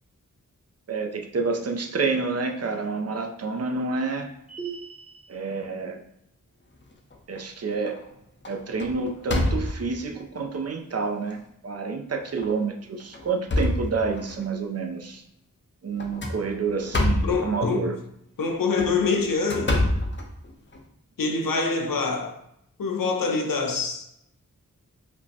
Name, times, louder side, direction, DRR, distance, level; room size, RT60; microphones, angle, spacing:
voice 1, 0.9-4.3 5.3-6.0 7.3-8.0 8.5-15.2 15.8-18.0, right 4 dB, 50° right, 0.5 m, -28 dB
sound 1, 4.5-5.3, right 6 dB, 20° right, 0.9 m, -38 dB
sound 2, 6.8-7.4 7.9-8.1 8.4-10.0 10.7-10.8 11.3-11.4 12.3-12.5 13.0-14.4 16.0-17.4 18.6-20.8, left 1 dB, 35° left, 0.5 m, -27 dB
voice 2, 17.2-17.8 18.4-19.8 21.2-22.4 22.8-24.0, left 4 dB, 85° left, 0.6 m, -25 dB
5.0 x 2.1 x 2.7 m
wide cardioid pair, 70°, 33 cm